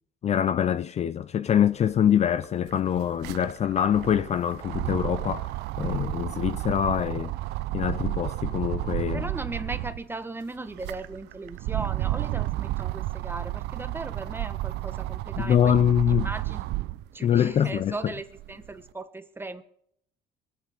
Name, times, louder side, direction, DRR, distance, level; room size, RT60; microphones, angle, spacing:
voice 1, 0.2-7.3 7.7-9.3 15.4-16.3 17.2-17.9, left 9 dB, 40° left, 0.5 m, -24 dB
sound 1, 1.9-2.0 2.3-10.1 10.6-17.1 17.6-18.7, right 17 dB, 85° right, 0.6 m, -32 dB
voice 2, 9.1-16.6 17.1-19.6, right 2 dB, 15° right, 1.3 m, -37 dB
23.5 x 8.5 x 5.1 m
cardioid pair, 110°, 17 cm